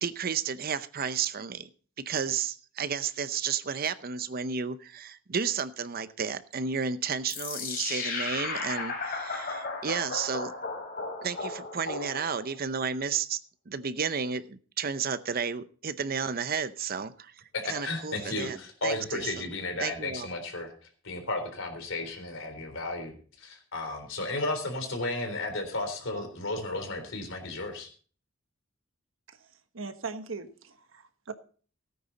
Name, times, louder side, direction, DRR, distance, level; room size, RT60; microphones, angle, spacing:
voice 1, 0.0-1.7 2.0-10.5 11.2-13.4 13.7-17.3 17.7-18.6 18.8-19.4 19.8-20.3, right 6 dB, 45° right, 14 dB, 0.7 m, -32 dB
sound 1, 7.3-12.6, left 4 dB, 45° left, 3.8 m, -35 dB
voice 2, 17.5-20.7 21.0-27.9, left 2 dB, 70° left, 5 dB, 3.8 m, -34 dB
voice 3, 29.7-31.3, right 4 dB, 75° right, 9 dB, 1.3 m, -40 dB
17.0 x 9.4 x 4.1 m, 0.41 s
head